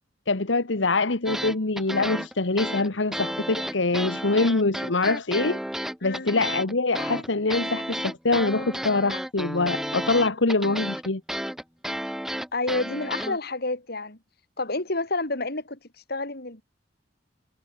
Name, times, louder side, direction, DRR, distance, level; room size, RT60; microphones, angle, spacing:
voice 1, 0.3-5.6 6.0-11.2, left 3 dB, 85° left, 1.5 m, -24 dB
sound 1, 1.3-13.4, equal, ahead, 1.8 m, -32 dB
voice 2, 6.0-6.3 12.5-14.2 14.6-15.8 16.1-16.6, left 2 dB, 60° left, 4.3 m, -29 dB
head